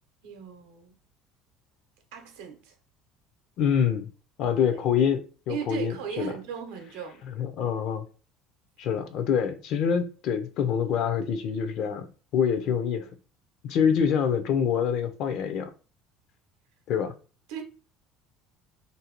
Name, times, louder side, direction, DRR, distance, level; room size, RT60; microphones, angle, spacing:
voice 1, 0.2-0.9 2.1-2.8 5.5-7.2 17.5-17.6, right 7 dB, 85° right, 0.7 m, -37 dB
voice 2, 3.6-4.1 4.4-5.2 5.5-6.3 7.4-8.1 8.8-12.1 12.3-13.1 13.6-15.7 16.9-17.1, left 7 dB, 60° left, 0.5 m, -25 dB
2.6 x 2.0 x 2.9 m
cardioid pair, 125°, 0 cm